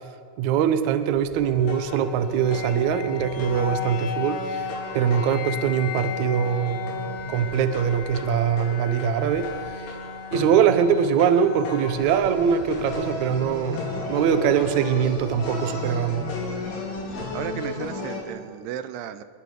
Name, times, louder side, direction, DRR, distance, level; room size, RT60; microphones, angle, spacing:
voice 1, 0.4-6.8 7.3-9.8 10.3-13.8 14.1-16.3, right 8 dB, 70° right, 10 dB, 1.9 m, -22 dB
sound 1, 1.1-5.7 6.0-18.2, left 2 dB, 90° left, 6.3 m, -35 dB
sound 2, 1.4-15.3, left 5 dB, 55° left, 1.9 m, -36 dB
voice 2, 17.3-19.2, right 10 dB, 85° right, 11 dB, 2.8 m, -34 dB
26.5 x 22.0 x 5.1 m, 2.1 s
omnidirectional pair, 4.7 m